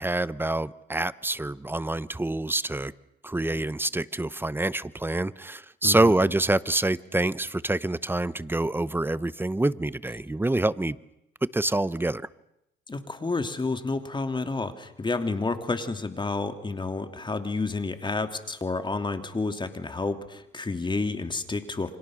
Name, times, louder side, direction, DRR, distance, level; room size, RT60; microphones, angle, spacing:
voice 1, 0.0-2.9 3.2-11.0 11.4-12.3, right 2 dB, 10° right, 17 dB, 0.9 m, -26 dB
voice 2, 12.9-22.0, left 3 dB, 25° left, 8 dB, 2.9 m, -30 dB
29.5 x 25.5 x 6.5 m, 0.83 s
cardioid pair, 90°, 20 cm